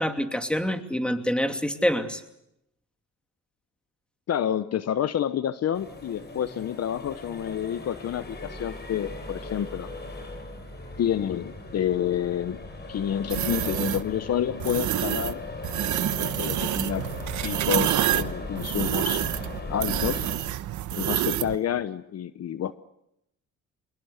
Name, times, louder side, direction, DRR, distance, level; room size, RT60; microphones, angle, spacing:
voice 1, 0.0-2.2, equal, 5° left, 6 dB, 2.8 m, -26 dB
voice 2, 4.3-9.9 11.0-12.6 12.9-15.4 16.0-17.1 17.4-19.2 19.7-20.3 21.0-22.8, left 9 dB, 55° left, 13 dB, 0.9 m, -29 dB
Accelerating revving vroom, 5.7-20.3, left 2 dB, 35° left, 7.3 m, -38 dB
sound 1, 13.3-14.0 14.6-15.3 15.6-21.6, right 12 dB, 75° right, 1.1 m, -27 dB
25.5 x 21.0 x 8.2 m, 0.82 s
cardioid pair, 90°, 30 cm